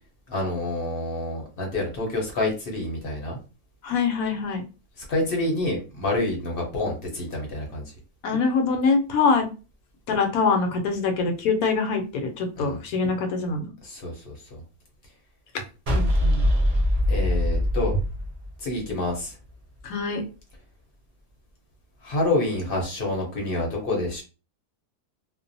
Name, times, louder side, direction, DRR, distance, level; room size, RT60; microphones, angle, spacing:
voice 1, 0.3-3.4 5.1-7.9 12.6-12.8 13.8-14.3 17.1-18.0 18.6-19.3 22.0-24.2, left 2 dB, 50° left, 0 dB, 0.7 m, -27 dB
voice 2, 3.8-4.6 8.2-9.5 10.1-13.6 15.9-16.5 19.8-20.2, left 4 dB, 75° left, 4 dB, 1.0 m, -24 dB
sound 1, 15.9-19.1, left 1 dB, 75° right, 0.3 m, -22 dB
2.5 x 2.1 x 2.6 m, 0.32 s
omnidirectional pair, 1.6 m